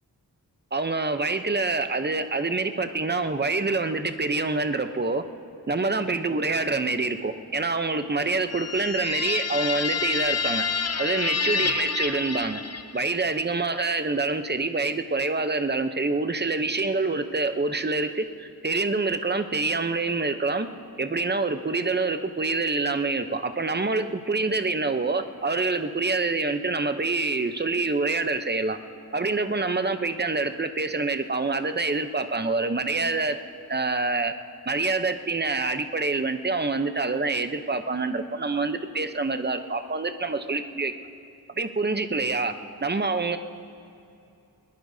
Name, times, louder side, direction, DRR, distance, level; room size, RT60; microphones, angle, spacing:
voice 1, 0.7-5.2 5.7-10.6 11.0-12.6 12.9-20.7 21.0-28.8 29.1-33.4 33.7-34.3 34.7-40.9 41.6-42.5 42.8-43.4, right 3 dB, 25° right, 8 dB, 0.7 m, -26 dB
sound 1, 8.5-13.2, left 5 dB, 45° left, 0.7 m, -28 dB
21.5 x 21.0 x 2.7 m, 2.7 s
wide cardioid pair, 75°, 37 cm